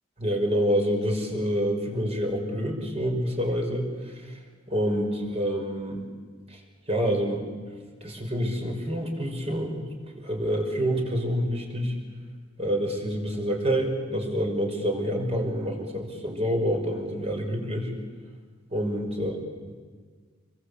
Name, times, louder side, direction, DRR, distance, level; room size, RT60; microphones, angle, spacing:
voice 1, 0.2-3.9 4.7-6.0 6.5-6.6 6.9-7.5 8.0-9.8 10.1-12.0 12.6-17.9 18.7-19.7, equal, 35° right, 2 dB, 5.4 m, -27 dB
27.0 x 22.5 x 8.4 m, 1.5 s
head